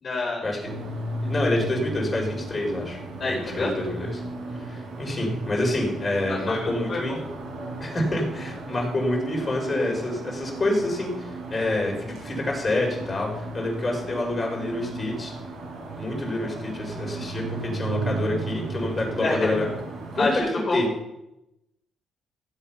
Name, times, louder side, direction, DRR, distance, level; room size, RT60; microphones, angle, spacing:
voice 1, 0.0-0.4 3.2-3.7 6.3-7.0 19.2-19.6 20.2-20.8, left 2 dB, 45° left, -4 dB, 3.9 m, -27 dB
sound 1, 0.6-20.4, right 2 dB, 90° right, 5.4 m, -35 dB
voice 2, 1.2-3.0 3.2-4.2 4.6-7.2 7.8-15.3 16.0-19.7 20.1-20.9, left 1 dB, 30° left, -1 dB, 4.9 m, -27 dB
15.0 x 8.0 x 5.8 m, 0.90 s
cardioid pair, 90°, 0 cm